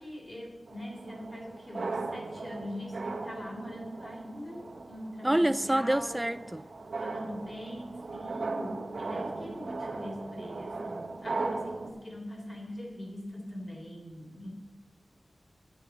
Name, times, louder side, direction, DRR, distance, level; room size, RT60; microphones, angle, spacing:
voice 1, 0.0-6.2 7.0-14.5, equal, 30° left, 3.6 m, -42 dB
sound 1, 0.7-11.9, right 3 dB, 70° right, 1.4 m, -38 dB
sound 2, 1.5-11.6, equal, 55° left, 4.3 m, -60 dB
voice 2, 5.2-6.6, right 1 dB, 15° right, 0.4 m, -27 dB
10.5 x 10.0 x 5.5 m
wide cardioid pair, 100°, 0 cm